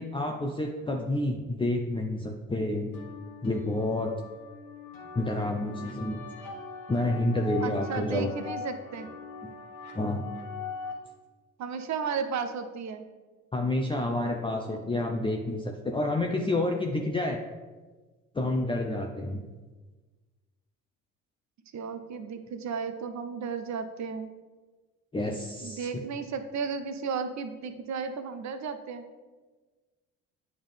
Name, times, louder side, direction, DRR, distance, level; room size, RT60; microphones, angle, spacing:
voice 1, 0.0-2.9 3.4-4.1 5.1-6.2 6.9-8.3 9.4-9.5 9.9-10.2 13.5-17.4 18.3-19.4 25.1-25.9, left 1 dB, 15° left, 1 dB, 0.6 m, -29 dB
sound 1, 2.9-10.9, left 5 dB, 65° left, 1.2 m, -41 dB
voice 2, 7.6-9.1 11.6-13.1 14.7-14.9 21.7-24.3 25.6-29.1, right 5 dB, 50° right, 9 dB, 0.7 m, -34 dB
8.7 x 3.6 x 3.4 m, 1.3 s
hypercardioid pair, 55°, 37 cm